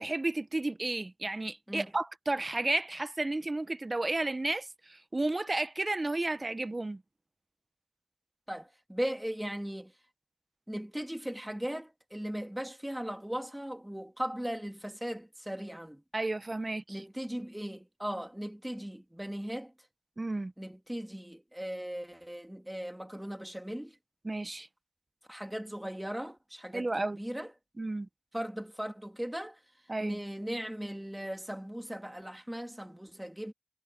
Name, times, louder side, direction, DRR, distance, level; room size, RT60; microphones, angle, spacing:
voice 1, 0.0-7.0 16.1-17.0 20.2-20.5 24.2-24.7 26.7-27.2 27.8-28.1 29.9-30.2, right 2 dB, 40° right, 1.1 m, -32 dB
voice 2, 8.5-9.9 10.7-16.0 16.9-19.7 20.6-23.9 25.3-27.5 28.3-29.6 30.0-33.5, equal, 10° right, 2.4 m, -38 dB
cardioid pair, 40°, 0 cm